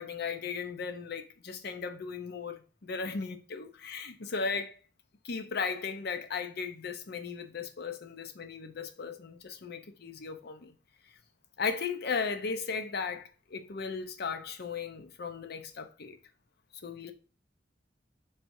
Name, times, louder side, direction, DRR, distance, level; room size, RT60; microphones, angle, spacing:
voice 1, 0.0-4.8 5.2-10.7 11.6-16.2 16.8-17.1, left 5 dB, 60° left, 0.6 m, -36 dB
4.4 x 3.4 x 2.6 m
head